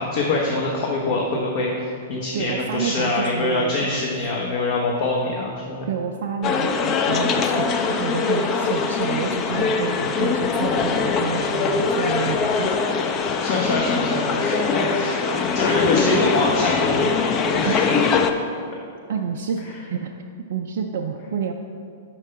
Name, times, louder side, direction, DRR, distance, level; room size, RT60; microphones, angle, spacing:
voice 1, 0.0-5.9 13.4-17.2 17.5-17.9, left 2 dB, 50° left, -2 dB, 0.9 m, -25 dB
voice 2, 2.3-3.7 5.9-12.7 17.6-18.0 19.1-19.6 19.9-20.1 20.5-21.5, right 6 dB, 60° right, 3 dB, 0.4 m, -29 dB
sound 1, 6.4-18.3, left 4 dB, 30° left, 0.4 m, -22 dB
5.7 x 4.5 x 5.5 m, 2.4 s
hypercardioid pair, 110°, 0 cm